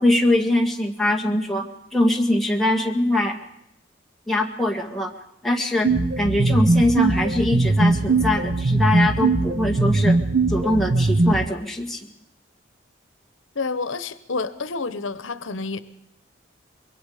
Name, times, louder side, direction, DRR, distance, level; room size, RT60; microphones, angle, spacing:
voice 1, 0.0-3.4 4.3-5.1 5.4-10.2 10.5-12.1, left 1 dB, ahead, 1 dB, 1.8 m, -22 dB
sound 1, 5.8-11.5, right 3 dB, 60° right, 0.9 m, -20 dB
voice 2, 13.5-15.8, left 4 dB, 85° left, 14 dB, 1.0 m, -29 dB
24.5 x 22.0 x 5.0 m, 0.78 s
head